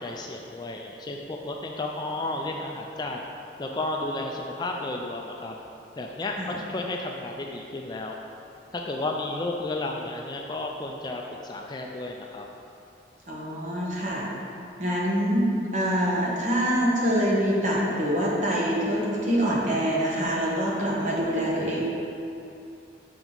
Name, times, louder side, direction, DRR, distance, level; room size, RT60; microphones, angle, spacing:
voice 1, 0.0-3.2 3.6-5.5 6.0-8.2 8.7-12.4, left 2 dB, 25° left, 1 dB, 0.3 m, -32 dB
voice 2, 13.3-14.2 14.8-15.4 15.7-21.8, equal, 40° right, -5 dB, 1.2 m, -25 dB
6.0 x 5.8 x 3.9 m, 2.7 s
head